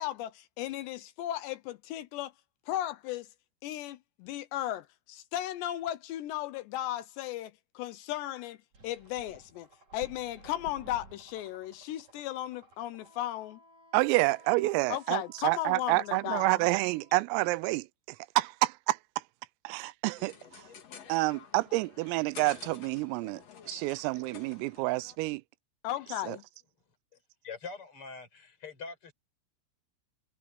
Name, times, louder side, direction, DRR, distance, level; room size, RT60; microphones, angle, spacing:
voice 1, 0.0-2.3 2.7-3.3 3.6-8.6 8.8-9.7 9.9-13.6 14.9-16.6 25.8-26.4, left 13 dB, 80° left, 2.6 m, -36 dB
sound 1, 8.7-13.3, right 3 dB, 35° right, 6.4 m, -53 dB
Wind instrument woodwind instrument, 12.9-17.4, left 1 dB, 5° left, 6.8 m, -58 dB
voice 2, 13.9-17.9 18.4-19.0 19.7-20.3 21.1-23.4 23.7-25.4 26.3-26.4, right 21 dB, 85° right, 3.4 m, -28 dB
sound 2, 20.2-25.2, left 7 dB, 50° left, 2.1 m, -50 dB
voice 3, 27.4-29.1, left 4 dB, 25° left, 5.7 m, -43 dB
omnidirectional pair, 5.9 m